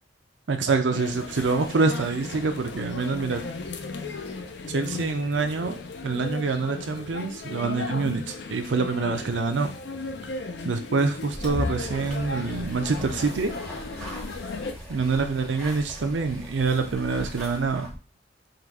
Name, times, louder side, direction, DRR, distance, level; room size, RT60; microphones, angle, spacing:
voice 1, 0.5-3.4 4.7-9.7 10.6-13.5 14.9-17.9, right 4 dB, 85° right, 6 dB, 0.5 m, -26 dB
sound 1, 0.9-14.7, left 3 dB, 65° left, 0.5 m, -35 dB
sound 2, 11.3-17.9, equal, 5° left, 1.0 m, -40 dB
3.8 x 2.4 x 4.5 m, 0.35 s
head